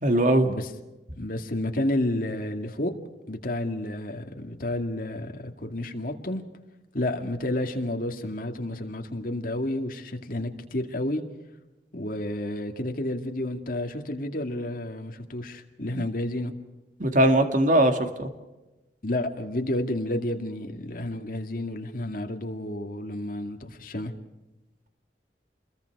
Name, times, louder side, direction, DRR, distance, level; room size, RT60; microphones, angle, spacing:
voice 1, 0.0-0.5 16.0-16.1 17.0-18.3, right 1 dB, 45° right, 6 dB, 2.0 m, -20 dB
voice 2, 1.1-2.9 3.3-6.4 6.9-11.2 11.9-16.5 19.0-24.1, left 1 dB, 50° left, 4 dB, 2.2 m, -30 dB
28.5 x 21.5 x 4.8 m, 1.1 s
head